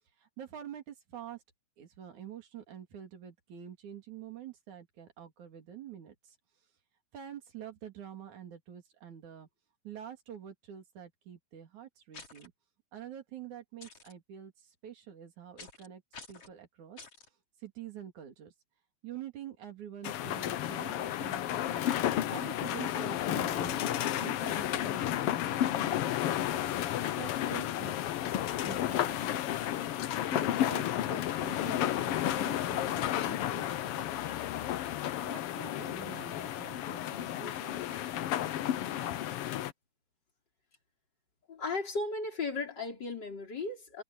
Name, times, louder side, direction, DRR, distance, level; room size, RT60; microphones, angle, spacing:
voice 1, 0.2-1.4 1.8-6.4 7.1-9.5 9.8-12.5 12.9-17.0 17.6-18.5 19.0-21.8 22.3-26.6 27.2-28.1 28.6-29.6 30.3-34.0 35.2-37.8, right 9 dB, 75° right, 4.1 m, -47 dB
sound 1, 12.1-12.5 13.8-14.1 15.6-15.9 16.1-16.5 17.0-17.3, left 4 dB, 50° left, 4.8 m, -49 dB
sound 2, 20.0-39.7, left 12 dB, 70° left, 1.5 m, -32 dB
voice 2, 41.5-44.0, left 3 dB, 35° left, 4.8 m, -35 dB
omnidirectional pair, 3.4 m